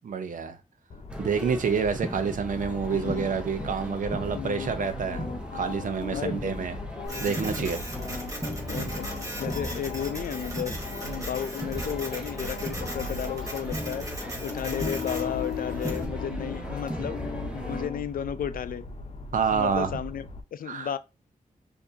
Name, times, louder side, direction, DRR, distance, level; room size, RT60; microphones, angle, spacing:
voice 1, 0.0-0.6 1.2-6.8 7.2-7.8 8.7-8.9 19.3-20.0 20.7-20.9, right 6 dB, 70° right, 0.7 m, -28 dB
sound 1, 0.9-20.4, left 3 dB, 50° left, 0.7 m, -37 dB
sound 2, 1.1-17.9, right 1 dB, 5° right, 0.6 m, -38 dB
voice 2, 2.9-3.3 4.3-4.7 6.1-6.5 7.2-7.7 8.7-9.1 9.4-18.9 19.5-21.0, left 9 dB, 85° left, 0.4 m, -34 dB
Printer, 7.1-16.0, right 1 dB, 25° right, 1.2 m, -39 dB
4.6 x 2.7 x 2.7 m
wide cardioid pair, 160°, 14 cm